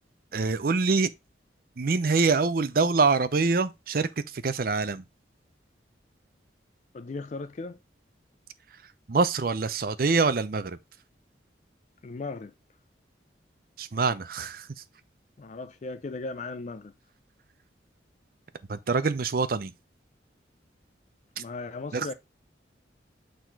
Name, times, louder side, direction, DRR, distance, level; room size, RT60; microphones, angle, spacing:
voice 1, 0.3-1.1 1.8-5.0 9.1-10.8 13.8-14.7 18.7-19.7 21.9-22.1, right 4 dB, 50° right, 0.5 m, -25 dB
voice 2, 6.9-7.8 12.0-12.5 15.4-16.9 21.4-22.1, left 3 dB, 40° left, 0.4 m, -37 dB
6.4 x 4.0 x 4.6 m
head